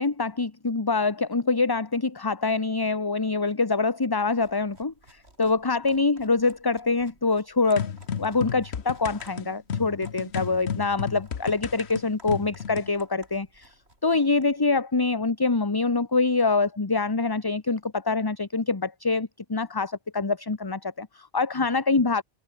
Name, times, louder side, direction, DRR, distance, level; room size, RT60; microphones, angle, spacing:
voice 1, 0.0-7.9 8.2-13.7 14.0-22.2, left 3 dB, 25° left, 1.0 m, -25 dB
sound 1, 4.3-14.6, right 1 dB, 80° right, 6.6 m, -56 dB
sound 2, 7.8-12.9, left 7 dB, 90° left, 1.4 m, -33 dB
omnidirectional pair, 1.1 m